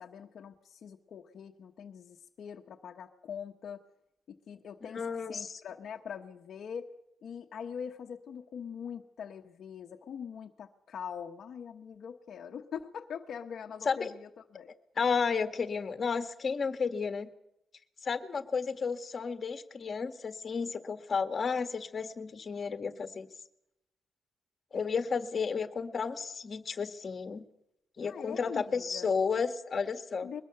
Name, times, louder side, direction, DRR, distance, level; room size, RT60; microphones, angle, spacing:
voice 1, 0.0-3.8 4.3-6.9 7.2-14.7 28.0-29.1 30.2-30.4, left 7 dB, 60° left, 3 dB, 1.1 m, -43 dB
voice 2, 4.9-5.6 13.9-14.1 15.0-17.3 18.0-23.3 24.7-27.4 28.0-30.3, left 5 dB, 35° left, 8 dB, 1.6 m, -32 dB
22.0 x 19.5 x 6.8 m, 0.81 s
cardioid pair, 140°, 0 cm